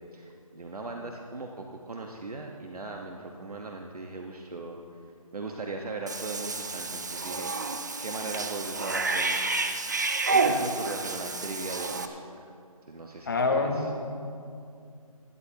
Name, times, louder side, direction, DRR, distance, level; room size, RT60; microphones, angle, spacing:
voice 1, 0.1-4.8 5.3-7.5 8.0-9.5 9.7-9.9 10.3-12.2 12.9-13.9, right 3 dB, 75° right, 1 dB, 1.3 m, -38 dB
Cat / Bathtub (filling or washing), 6.1-12.1, right 3 dB, 30° right, 0.6 m, -29 dB
voice 2, 13.2-13.9, left 3 dB, 35° left, 3 dB, 1.3 m, -26 dB
20.0 x 13.5 x 2.9 m, 2.5 s
figure-of-eight pair, 170°, 19 cm